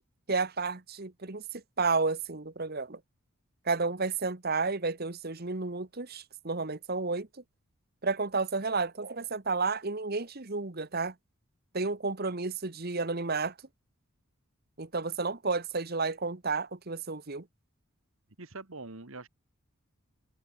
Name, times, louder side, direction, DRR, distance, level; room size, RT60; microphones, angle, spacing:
voice 1, 0.3-3.0 3.6-7.3 8.0-11.1 11.7-13.5 14.8-17.4, right 4 dB, 45° right, 1.3 m, -31 dB
voice 2, 18.4-19.3, right 3 dB, 65° right, 1.9 m, -43 dB
head